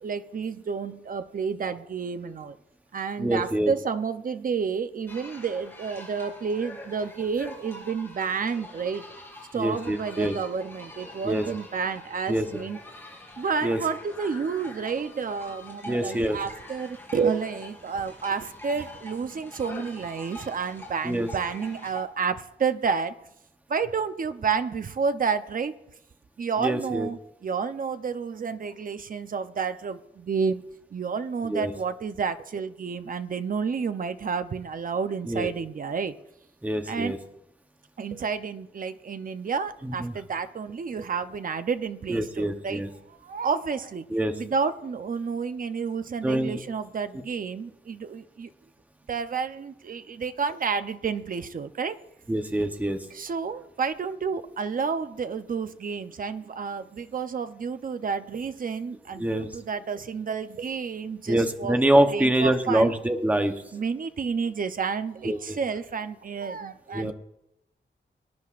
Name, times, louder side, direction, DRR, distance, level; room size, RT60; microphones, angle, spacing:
voice 1, 0.0-2.6 2.9-9.1 9.5-12.8 13.4-23.1 23.7-25.7 26.4-30.6 30.9-36.1 36.9-37.2 38.0-42.8 43.1-44.1 44.4-48.5 49.1-52.0 53.1-61.8 62.1-62.9 63.3-67.1, right 5 dB, 45° right, 10 dB, 0.6 m, -30 dB
voice 2, 3.2-3.7 9.6-10.4 11.2-11.5 12.3-12.5 13.6-13.8 15.9-16.4 21.0-21.3 26.6-27.1 31.5-31.7 35.3-35.5 36.6-37.2 39.8-40.1 42.1-42.9 44.1-44.3 46.2-46.6 52.3-53.0 59.2-59.5 61.3-63.5 65.2-65.6 66.9-67.1, right 1 dB, 10° right, 6 dB, 0.8 m, -25 dB
sound 1, 5.1-22.0, left 1 dB, 10° left, 3.5 m, -44 dB
24.5 x 10.5 x 2.5 m, 0.85 s
wide cardioid pair, 160°, 19 cm